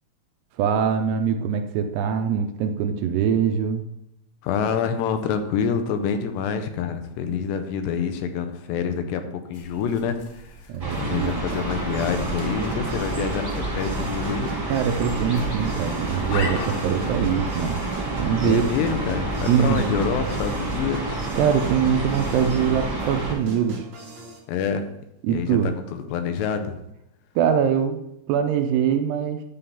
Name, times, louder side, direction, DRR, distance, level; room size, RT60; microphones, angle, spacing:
voice 1, 0.6-3.8 10.7-11.6 14.7-17.8 18.2-18.7 19.4-20.0 21.4-23.9 25.2-25.7 27.4-28.0 28.3-29.4, right 8 dB, 80° right, 6 dB, 2.5 m, -23 dB
voice 2, 4.4-10.5 11.0-14.5 18.4-21.2 24.5-24.8 25.3-26.8, left 7 dB, 80° left, 8 dB, 2.8 m, -27 dB
sound 1, 9.5-19.4, left 3 dB, 60° left, 2.4 m, -40 dB
sound 2, 10.8-23.3, right 2 dB, 20° right, 1.0 m, -29 dB
sound 3, 11.5-24.4, right 2 dB, 55° right, 1.2 m, -39 dB
9.9 x 3.7 x 6.9 m, 0.81 s
omnidirectional pair, 5.0 m